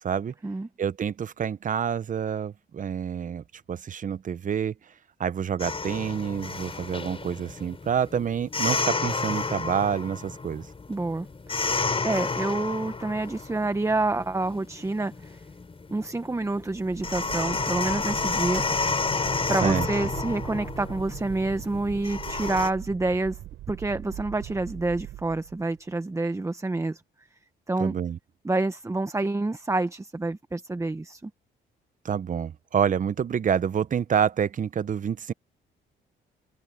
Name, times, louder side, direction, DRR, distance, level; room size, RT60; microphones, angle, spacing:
voice 1, 0.0-0.3 0.8-4.7 5.2-10.7 19.4-19.9 27.8-28.2 32.0-35.3, right 8 dB, 40° right, 0.8 m, -28 dB
sound 1, 5.6-22.7, left 4 dB, 30° left, 4.8 m, -31 dB
voice 2, 10.9-11.3 11.5-15.4 15.9-18.6 19.5-23.4 23.7-27.0 27.7-27.9 28.4-31.3, right 2 dB, 15° right, 1.1 m, -28 dB
sound 2, 16.4-25.9, right 14 dB, 90° right, 4.8 m, -41 dB
cardioid pair, 90°, 20 cm